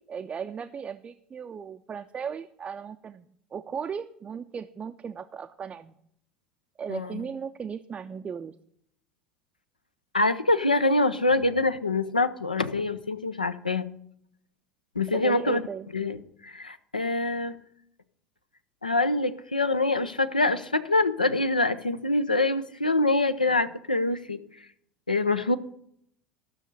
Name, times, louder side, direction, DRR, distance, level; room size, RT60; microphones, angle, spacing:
voice 1, 0.0-5.9 6.8-8.5 15.1-15.9, right 7 dB, 25° right, 6 dB, 0.4 m, -37 dB
voice 2, 6.9-7.2 10.1-13.9 15.0-15.6 15.9-16.2 16.4-17.6 18.8-24.4 25.1-25.6, left 2 dB, 85° left, 12 dB, 0.5 m, -25 dB
13.0 x 6.4 x 5.3 m, 0.70 s
figure-of-eight pair, 70°, 4 cm